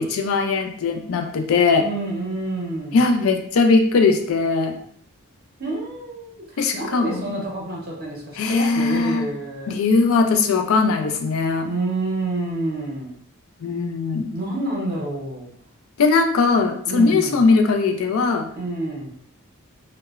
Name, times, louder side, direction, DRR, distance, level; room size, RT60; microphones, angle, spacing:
voice 1, 0.0-1.8 2.9-4.8 6.6-7.2 8.4-9.3 9.7-11.7 13.6-14.4 16.0-18.5, left 4 dB, 70° left, 5 dB, 0.3 m, -19 dB
voice 2, 1.8-3.1 5.6-9.7 11.7-13.1 14.3-15.5 16.9-17.5 18.5-19.1, right 2 dB, 45° right, -3 dB, 0.7 m, -28 dB
2.9 x 2.0 x 2.3 m, 0.64 s
head